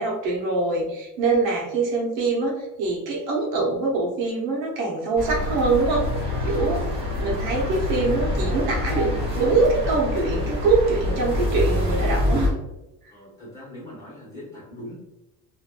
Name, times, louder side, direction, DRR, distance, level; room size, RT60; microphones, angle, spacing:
voice 1, 0.0-6.1 6.4-6.9 7.2-12.5, right 3 dB, 80° right, -2 dB, 1.0 m, -24 dB
sound 1, 5.2-12.5, left 1 dB, 15° right, 1.2 m, -26 dB
voice 2, 13.1-15.0, left 1 dB, 10° left, -8 dB, 1.3 m, -41 dB
3.0 x 2.7 x 2.5 m, 0.97 s
cardioid pair, 180°, 32 cm